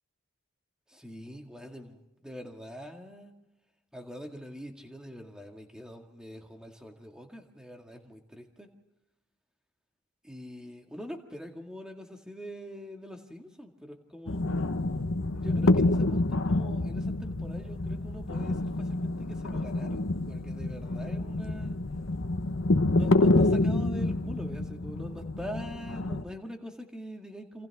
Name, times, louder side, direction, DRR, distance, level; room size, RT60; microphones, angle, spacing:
voice 1, 0.9-3.3 3.9-8.7 10.2-14.4 15.4-21.8 22.9-27.7, equal, 5° right, 2 dB, 1.9 m, -44 dB
sound 1, 14.3-26.2, left 2 dB, 65° left, 1.0 m, -27 dB
28.0 x 27.5 x 3.6 m, 0.98 s
head